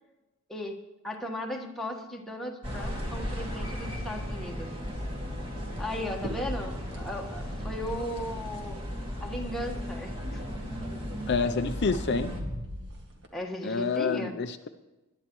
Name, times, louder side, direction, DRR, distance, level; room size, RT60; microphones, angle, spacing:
voice 1, 1.0-4.7 5.8-8.8 9.2-10.4 13.3-14.3, left 1 dB, ahead, -1 dB, 1.3 m, -36 dB
sound 1, 2.6-12.4, equal, 25° right, 2.0 m, -35 dB
sound 2, 3.1-12.9, left 1 dB, 85° right, 2.3 m, -50 dB
sound 3, 4.9-5.1 5.4-6.1 6.5-8.4 10.6-10.9 11.5-11.6 11.8-13.3, equal, 55° right, 1.8 m, -43 dB
voice 2, 11.3-12.3 13.6-14.7, left 4 dB, 55° left, 8 dB, 0.5 m, -28 dB
20.0 x 11.5 x 3.1 m, 1.1 s
head